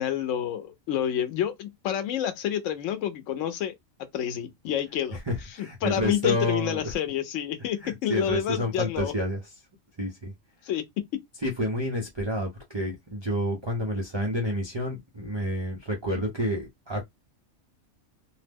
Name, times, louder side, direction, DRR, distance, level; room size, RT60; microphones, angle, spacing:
voice 1, 0.0-3.7 4.1-5.2 5.6-9.1 10.7-10.8 11.1-11.2, left 10 dB, 80° left, 0.9 m, -28 dB
voice 2, 5.1-6.9 7.8-9.5 10.0-10.3 11.4-17.1, equal, 30° right, 0.5 m, -29 dB
2.7 x 2.0 x 3.4 m
omnidirectional pair, 1.3 m